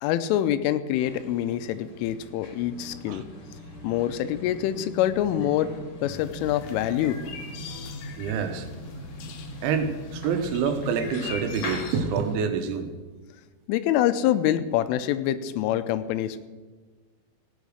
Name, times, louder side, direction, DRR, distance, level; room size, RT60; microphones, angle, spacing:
voice 1, 0.0-3.2 3.8-5.7 6.0-7.2 13.7-16.5, left 12 dB, 85° left, 12 dB, 3.2 m, -25 dB
sound 1, 1.0-12.4, left 2 dB, 45° left, 2.5 m, -41 dB
Acoustic guitar, 2.7-8.1, left 1 dB, 10° right, 1.1 m, -47 dB
sound 2, 6.2-12.0, left 6 dB, 70° left, 2.7 m, -43 dB
voice 2, 8.2-8.7 9.6-12.9, right 6 dB, 75° right, 7 dB, 3.2 m, -27 dB
16.5 x 8.3 x 6.4 m, 1.3 s
omnidirectional pair, 5.7 m